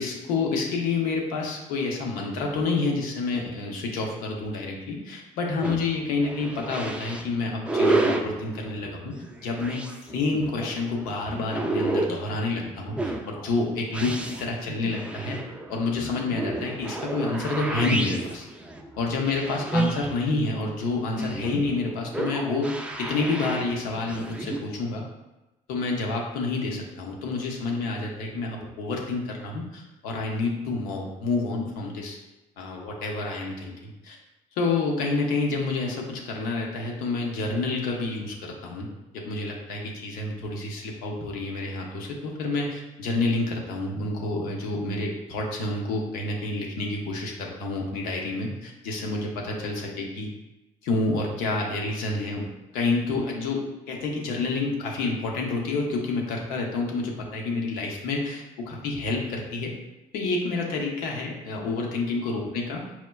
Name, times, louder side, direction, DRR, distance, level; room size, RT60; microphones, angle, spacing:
voice 1, 0.0-9.1 9.4-15.4 15.7-18.5 18.9-25.0 25.7-32.2 32.6-34.2 34.6-38.9 39.1-50.3 50.8-52.5 52.7-59.7 60.1-62.8, left 3 dB, 90° left, 0 dB, 0.6 m, -29 dB
sound 1, 5.6-24.6, right 2 dB, 10° right, 0.3 m, -31 dB
4.3 x 2.1 x 2.2 m, 1.0 s
supercardioid pair, 80°, 15 cm